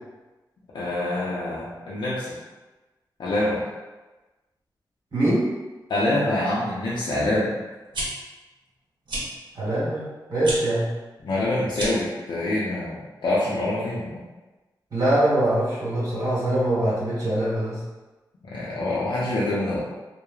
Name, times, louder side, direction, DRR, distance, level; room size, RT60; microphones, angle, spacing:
voice 1, 0.7-2.4 3.2-3.6 5.9-7.5 11.2-14.2 18.4-19.8, left 1 dB, 80° left, -8 dB, 0.5 m, -25 dB
voice 2, 5.1-5.4 9.5-10.0 10.3-10.9 14.9-17.8, right 1 dB, 55° right, -9 dB, 1.1 m, -23 dB
sound 1, 7.7-8.1 9.1-9.3 10.4-10.6 11.7-12.1, right 1 dB, 80° right, 0.7 m, -30 dB
3.1 x 2.0 x 2.3 m, 1.2 s
wide cardioid pair, 105°, 8 cm